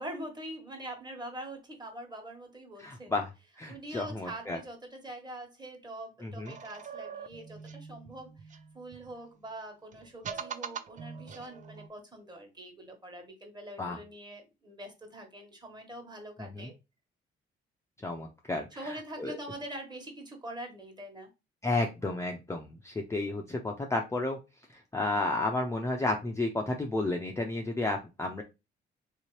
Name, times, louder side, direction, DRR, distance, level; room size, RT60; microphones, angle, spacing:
voice 1, 0.0-3.2 3.7-16.7 18.7-21.3, right 1 dB, 20° right, 3 dB, 1.3 m, -44 dB
voice 2, 2.8-3.3 3.6-4.6 6.2-6.5 13.8-14.0 16.4-16.7 18.0-19.4 21.6-24.4 24.9-28.4, left 2 dB, 15° left, 1 dB, 0.5 m, -32 dB
sound 1, 6.4-9.2 9.9-11.9, right 6 dB, 40° right, 0.4 m, -43 dB
3.2 x 2.8 x 3.1 m, 0.25 s
cardioid pair, 90°, 20 cm